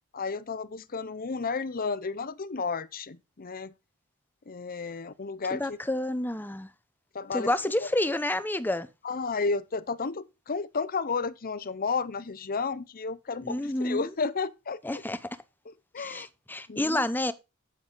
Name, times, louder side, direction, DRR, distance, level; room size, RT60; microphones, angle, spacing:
voice 1, 0.1-3.7 4.5-5.8 7.1-7.5 7.8-7.9 9.0-15.0 15.7-16.3 16.7-17.0, left 4 dB, 40° left, 0.7 m, -32 dB
voice 2, 5.5-6.7 7.3-8.9 13.4-14.1 14.8-15.2 16.0-17.3, left 1 dB, 10° left, 0.7 m, -29 dB
8.7 x 7.8 x 3.9 m
head